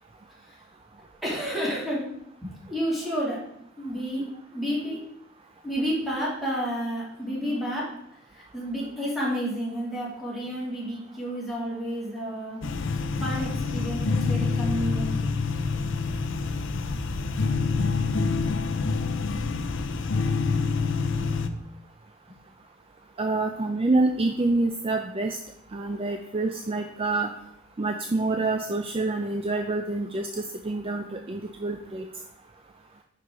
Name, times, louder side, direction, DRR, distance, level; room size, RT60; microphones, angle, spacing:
voice 1, 1.2-2.1 2.4-3.4 3.8-4.2 4.5-5.0 5.6-7.9 8.3-12.6 13.2-15.2 21.2-21.3, equal, ahead, -7 dB, 2.7 m, -30 dB
sound 1, 12.6-21.5, left 4 dB, 65° left, 0.5 m, -27 dB
voice 2, 23.2-25.4 25.7-27.3 27.8-32.0, right 2 dB, 30° right, 5 dB, 0.4 m, -27 dB
9.5 x 4.8 x 3.8 m, 0.73 s
head